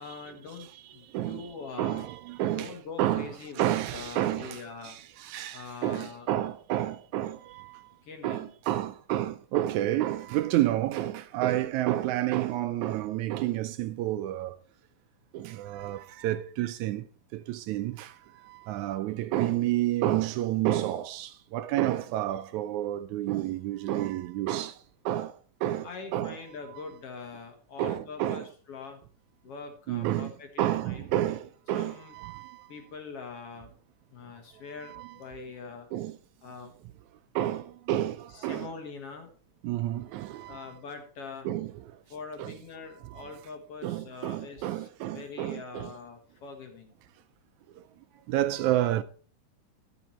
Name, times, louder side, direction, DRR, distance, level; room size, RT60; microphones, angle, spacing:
voice 1, 0.0-2.1 2.6-5.0 5.5-6.3 8.0-8.5 25.8-29.0 29.4-31.1 31.7-32.1 32.7-33.7 34.1-35.9 36.4-36.7 38.3-39.3 40.5-41.5 42.1-46.9, left 4 dB, 55° left, 2.0 m, -43 dB
voice 2, 1.0-7.9 8.2-14.6 15.3-17.1 17.3-24.8 25.1-26.4 27.8-28.5 29.9-30.3 30.6-32.7 34.8-35.2 35.9-36.2 37.4-38.7 39.6-40.7 41.5-42.0 42.4-42.5 43.0-43.3 43.8-45.9 47.7-47.8 48.3-49.0, right 14 dB, 80° right, 1.8 m, -30 dB
11.5 x 7.2 x 4.3 m
omnidirectional pair, 3.6 m